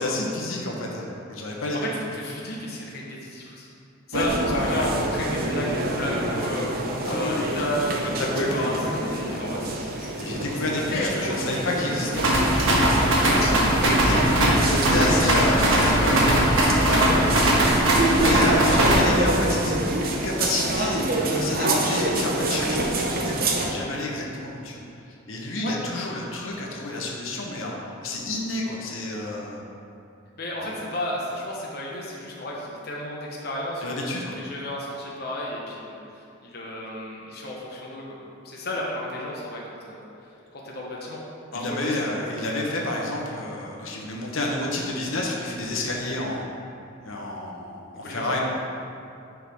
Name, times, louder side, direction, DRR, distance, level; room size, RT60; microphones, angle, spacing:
voice 1, 0.0-1.8 4.1-4.9 7.0-7.7 8.2-9.0 10.2-13.0 13.4-13.5 14.0-16.4 16.8-17.0 18.1-19.8 20.2-21.0 21.3-24.8 25.3-29.6 30.6-30.7 33.8-34.4 41.5-46.5 47.0-48.4, left 2 dB, 85° left, -2 dB, 1.1 m, -29 dB
voice 2, 1.7-3.7 4.1-8.7 9.0-11.7 12.8-13.4 16.9-17.2 25.6-25.8 30.4-34.1 34.3-36.0 36.4-38.2 38.4-40.1 40.6-41.2 41.5-42.7 48.0-48.4, left 1 dB, 50° left, -3 dB, 1.0 m, -32 dB
sound 1, 4.1-23.7, right 1 dB, 45° right, 0.7 m, -27 dB
sound 2, 12.1-19.2, right 1 dB, 75° right, 1.4 m, -20 dB
10.0 x 4.7 x 3.5 m, 2.6 s
head